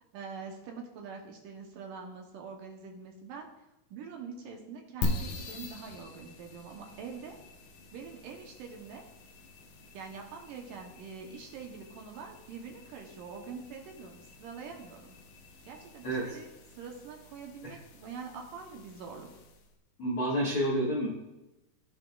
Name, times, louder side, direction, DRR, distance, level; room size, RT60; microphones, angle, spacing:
voice 1, 0.1-3.5 3.9-7.4 7.9-9.0 9.9-15.1 15.7-16.5 16.8-19.3, right 5 dB, 75° right, 1 dB, 2.2 m, -44 dB
sound 1, 5.0-19.7, left 2 dB, 75° left, 1.8 m, -43 dB
voice 2, 20.0-21.1, right 1 dB, 60° left, -5 dB, 1.4 m, -29 dB
16.0 x 5.8 x 2.4 m, 0.97 s
omnidirectional pair, 4.6 m